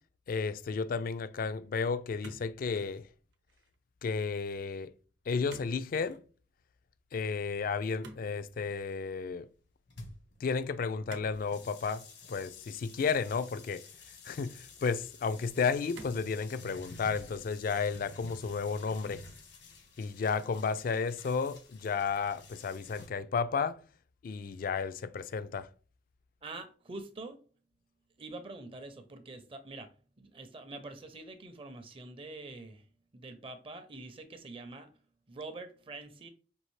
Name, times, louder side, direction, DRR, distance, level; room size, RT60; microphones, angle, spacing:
voice 1, 0.3-3.0 4.0-4.9 5.3-6.2 7.1-9.5 10.4-12.0 12.3-13.8 14.3-19.2 20.0-23.8 24.2-25.7, left 5 dB, 50° left, 0.3 m, -32 dB
sound 1, 2.2-3.0 3.3-3.8 5.5-5.8 6.0-6.3 8.0-8.8 11.1-11.4 11.8-12.0 13.0-13.7 14.4-14.5 15.9-16.3 16.9-17.4 17.7-18.1, right 2 dB, 90° right, 0.7 m, -51 dB
sound 2, 9.9-23.1, left 3 dB, 75° left, 1.3 m, -52 dB
voice 2, 26.4-27.4 28.2-29.9 30.2-32.9 33.1-34.9 35.3-36.3, right 2 dB, 30° right, 0.5 m, -45 dB
5.3 x 2.7 x 3.1 m
head